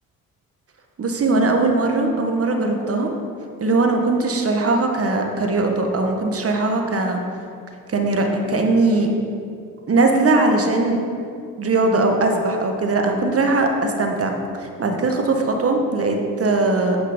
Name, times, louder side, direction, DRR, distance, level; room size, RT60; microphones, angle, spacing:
voice 1, 1.0-3.1 3.6-7.2 7.9-9.1 9.9-11.0 11.6-14.3 14.6-17.0, right 2 dB, 35° right, 3 dB, 1.5 m, -20 dB
9.0 x 5.8 x 5.2 m, 2.4 s
hypercardioid pair, 60°, 38 cm